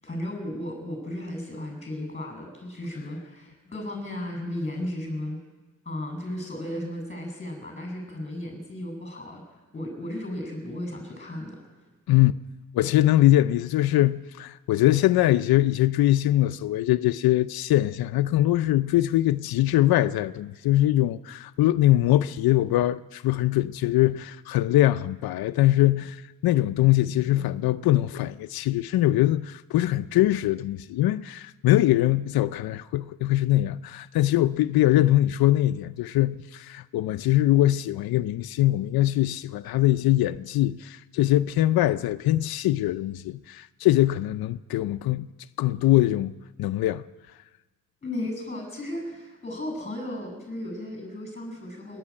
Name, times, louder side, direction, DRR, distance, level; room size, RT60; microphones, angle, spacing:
voice 1, 0.0-5.4 5.9-11.6 48.0-52.0, left 1 dB, 20° left, 7.5 m, -35 dB
voice 2, 12.7-45.3 45.6-46.3 46.6-47.0, left 15 dB, 85° left, 0.6 m, -22 dB
28.0 x 11.0 x 8.7 m
cardioid pair, 130°, 36 cm